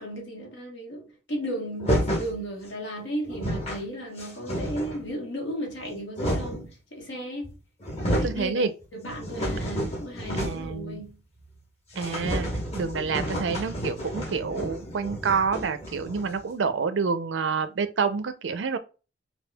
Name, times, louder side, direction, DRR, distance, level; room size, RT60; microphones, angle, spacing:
voice 1, 0.0-7.5 8.0-11.2, right 1 dB, 85° left, 1.2 m, -35 dB
sound 1, 1.8-2.3 3.0-3.1 3.2-3.8 4.2-5.0 5.7-6.7 7.4-7.5 7.8-8.4 8.8-10.8 11.0-11.1 11.4-11.5 11.9-16.4, equal, 35° left, 1.1 m, -30 dB
voice 2, 8.2-8.7 10.4-11.0 12.0-12.5 12.7-18.8, right 5 dB, 85° right, 0.5 m, -28 dB
4.3 x 2.3 x 2.2 m
head